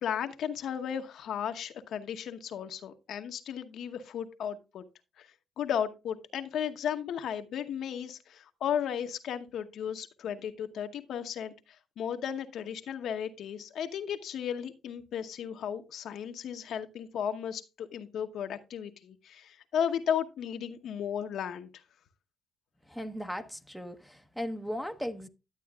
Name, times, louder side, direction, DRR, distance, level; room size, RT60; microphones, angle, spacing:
voice 1, 0.0-4.8 5.2-5.3 5.6-11.5 12.0-21.8, left 8 dB, 70° left, 0.9 m, -35 dB
voice 2, 22.9-25.3, equal, ahead, 0.9 m, -37 dB
11.0 x 8.3 x 2.3 m
cardioid pair, 90°, 0 cm